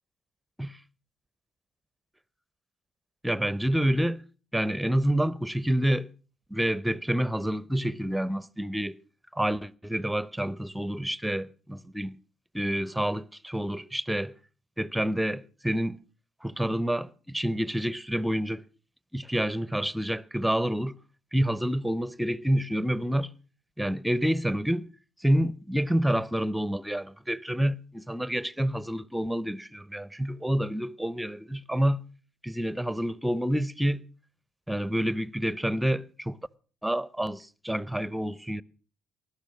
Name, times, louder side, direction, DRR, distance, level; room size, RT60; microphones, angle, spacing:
voice 1, 3.2-4.2 4.5-6.1 6.5-9.0 9.3-12.1 12.5-14.3 14.8-16.0 16.4-18.6 19.1-21.0 21.3-23.3 23.8-24.9 25.2-32.0 32.4-34.0 34.7-36.4 36.8-38.6, equal, 5° right, 0.7 m, -28 dB
20.0 x 11.5 x 6.1 m
figure-of-eight pair, 50°, 0 cm